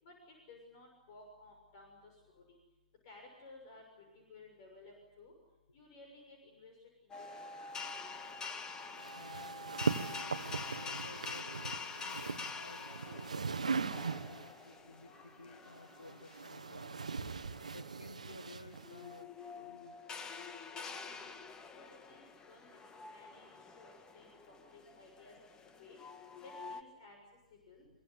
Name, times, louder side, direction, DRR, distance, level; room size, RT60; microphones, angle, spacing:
voice 1, 0.0-2.4 3.0-5.3 5.7-7.7 20.7-21.3 21.7-22.8 23.1-26.0 26.4-27.2 27.7-27.8, left 2 dB, 50° left, 3 dB, 6.5 m, -57 dB
sound 1, 7.1-26.8, left 4 dB, 20° left, 1.7 m, -47 dB
sound 2, 9.0-14.6 15.7-19.2, right 5 dB, 80° right, 1.1 m, -40 dB
voice 2, 9.2-17.0 17.7-19.3 19.6-20.0, left 2 dB, 90° left, 8 dB, 1.4 m, -55 dB
23.0 x 23.0 x 9.8 m, 0.99 s
figure-of-eight pair, 110°, 4 cm